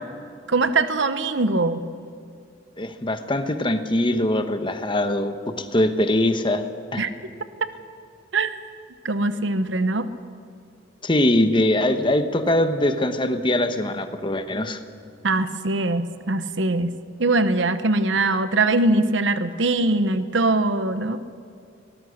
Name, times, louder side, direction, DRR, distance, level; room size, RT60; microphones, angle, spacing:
voice 1, 0.5-1.8 7.0-7.1 8.3-8.5 9.0-10.1 15.2-16.9 17.2-21.2, right 2 dB, 80° right, 11 dB, 1.0 m, -22 dB
voice 2, 2.8-6.7 6.9-7.1 11.0-14.8, left 1 dB, 25° left, 8 dB, 1.1 m, -22 dB
23.0 x 19.0 x 6.5 m, 2.4 s
head